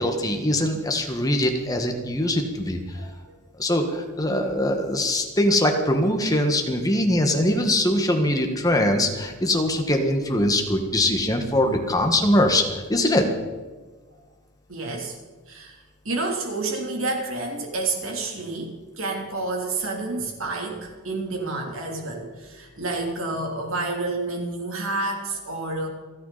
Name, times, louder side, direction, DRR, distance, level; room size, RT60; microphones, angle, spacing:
voice 1, 0.0-2.8 3.6-13.2, left 1 dB, 15° left, 4 dB, 1.6 m, -22 dB
voice 2, 14.7-15.2 15.5-15.8 16.0-25.9, right 2 dB, 70° right, 1 dB, 3.3 m, -29 dB
28.5 x 9.6 x 4.2 m, 1.4 s
head